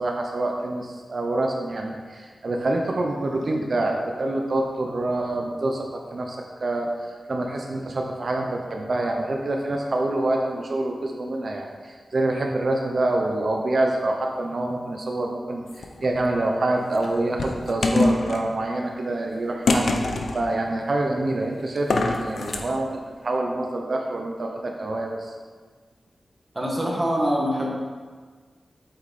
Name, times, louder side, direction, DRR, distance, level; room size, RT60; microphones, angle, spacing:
voice 1, 0.0-19.9 20.3-22.9 23.2-25.3, right 2 dB, 50° right, 1 dB, 0.9 m, -26 dB
sound 1, 15.7-16.2 16.9-18.4 19.7-20.4 21.8-22.6, left 2 dB, 85° left, 0.8 m, -24 dB
voice 2, 26.5-27.7, equal, 20° right, -3 dB, 2.0 m, -24 dB
8.3 x 8.0 x 4.3 m, 1.5 s
wide cardioid pair, 135°, 0 cm